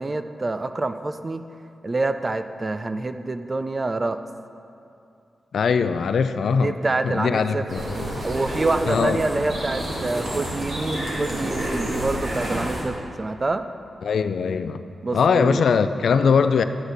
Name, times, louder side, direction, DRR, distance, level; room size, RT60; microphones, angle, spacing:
voice 1, 0.0-1.4 1.8-4.2 6.5-7.7 8.2-13.7 15.0-15.6, right 2 dB, 30° right, 10 dB, 0.4 m, -26 dB
voice 2, 5.5-6.8 7.0-7.8 8.9-9.2 14.0-14.9 15.1-16.6, left 6 dB, 75° left, 11 dB, 0.4 m, -21 dB
sound 1, 7.7-12.8, right 1 dB, 75° right, 2.5 m, -29 dB
11.5 x 7.9 x 4.0 m, 2.6 s
wide cardioid pair, 100°, 0 cm